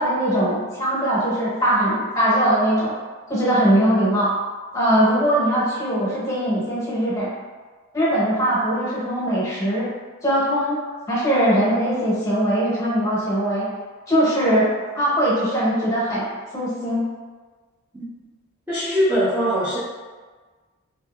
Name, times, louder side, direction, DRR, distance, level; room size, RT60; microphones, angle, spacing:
voice 1, 0.0-2.9 3.3-4.3 4.7-7.3 7.9-9.9 10.2-10.8 11.1-13.7 14.1-17.0, equal, 15° left, -9 dB, 1.0 m, -21 dB
voice 2, 18.7-19.8, equal, 10° right, -13 dB, 0.5 m, -21 dB
2.7 x 2.7 x 2.2 m, 1.4 s
head